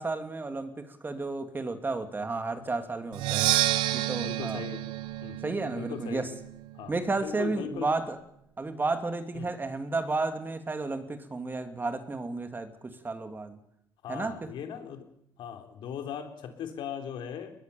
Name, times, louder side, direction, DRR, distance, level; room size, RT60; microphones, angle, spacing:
voice 1, 0.0-3.5 3.9-4.6 5.4-6.3 6.9-8.2 8.6-13.6 14.1-14.5, right 3 dB, 25° right, 8 dB, 2.7 m, -32 dB
Percussion, 3.1-6.9, right 16 dB, 90° right, 0.8 m, -30 dB
voice 2, 4.2-4.8 5.2-5.4 5.7-6.2 6.7-7.9 9.3-9.5 14.0-15.1 15.4-17.5, left 8 dB, 70° left, 5 dB, 3.7 m, -38 dB
22.0 x 18.5 x 7.1 m, 0.75 s
cardioid pair, 85°, 8 cm